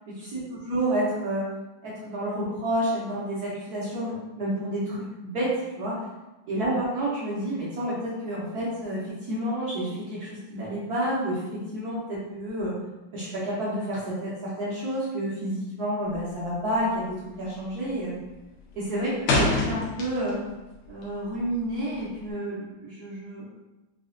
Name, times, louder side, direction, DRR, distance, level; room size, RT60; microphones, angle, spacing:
voice 1, 0.2-1.4 1.8-6.0 6.5-9.0 9.3-12.7 13.1-18.1 18.7-20.4 20.9-23.4, right 1 dB, 60° right, -8 dB, 1.1 m, -30 dB
sound 1, 16.0-16.4 16.7-17.1 17.4-17.9 18.2-20.5 20.8-22.3, left 2 dB, 85° left, 1.6 m, -27 dB
4.1 x 2.3 x 2.5 m, 1.0 s
omnidirectional pair, 2.3 m